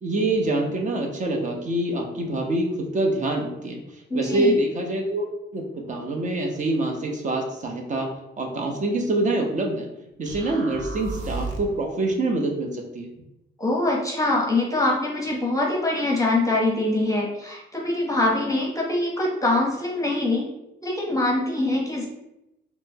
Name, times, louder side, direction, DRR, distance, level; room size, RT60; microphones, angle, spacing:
voice 1, 0.0-9.9 10.2-13.1, right 2 dB, 40° right, 2 dB, 0.7 m, -26 dB
voice 2, 4.1-4.5 13.6-20.5 20.8-22.1, left 2 dB, 15° left, -2 dB, 0.7 m, -23 dB
sound 1, 10.3-11.8, right 3 dB, 85° right, 0.5 m, -33 dB
4.1 x 2.1 x 2.7 m, 0.87 s
cardioid pair, 90°, 20 cm